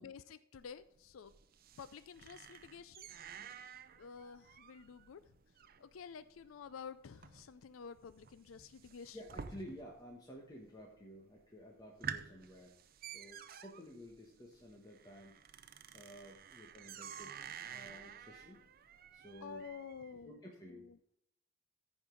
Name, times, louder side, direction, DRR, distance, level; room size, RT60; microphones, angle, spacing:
voice 1, 0.0-1.3 1.8-3.1 4.0-5.2 5.8-9.2 19.4-20.4 20.7-21.0, left 6 dB, 80° left, 14 dB, 0.4 m, -50 dB
sound 1, 0.6-10.1 10.4-11.0 11.4-11.5 11.8-20.1, right 8 dB, 45° right, 0.5 m, -51 dB
voice 2, 9.1-12.7 13.1-15.3 15.9-17.3 17.7-18.6 19.1-19.6 20.2-20.9, equal, 20° left, -2 dB, 1.3 m, -53 dB
14.5 x 5.3 x 3.9 m, 0.75 s
head